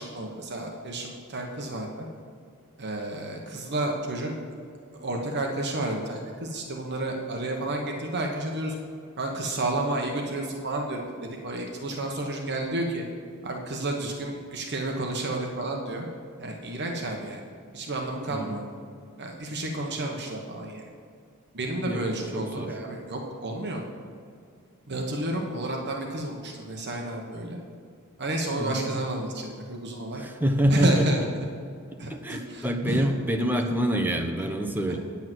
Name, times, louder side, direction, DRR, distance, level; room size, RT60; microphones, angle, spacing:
voice 1, 0.0-2.1 2.8-4.4 5.0-8.7 9.2-13.0 13.4-16.1 16.4-17.4 17.7-18.6 19.2-20.8 21.5-23.8 24.9-27.6 28.2-30.2 30.7-31.5 32.0-33.1 34.6-35.0, right 1 dB, 50° right, 1 dB, 1.1 m, -31 dB
voice 2, 22.3-22.7 28.6-28.9 30.2-31.1 32.1-35.0, equal, 10° right, 4 dB, 0.8 m, -26 dB
9.3 x 8.5 x 6.1 m, 2.3 s
head